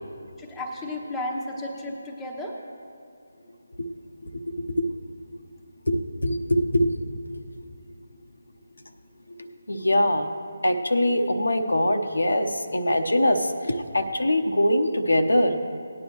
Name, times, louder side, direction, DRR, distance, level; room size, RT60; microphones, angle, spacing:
voice 1, 0.4-2.6, left 1 dB, 5° left, -3 dB, 1.1 m, -33 dB
voice 2, 5.9-6.9 9.4-10.3 10.6-15.6, left 1 dB, 70° left, 6 dB, 0.8 m, -23 dB
18.0 x 9.7 x 3.0 m, 2.5 s
figure-of-eight pair, 150°, 0 cm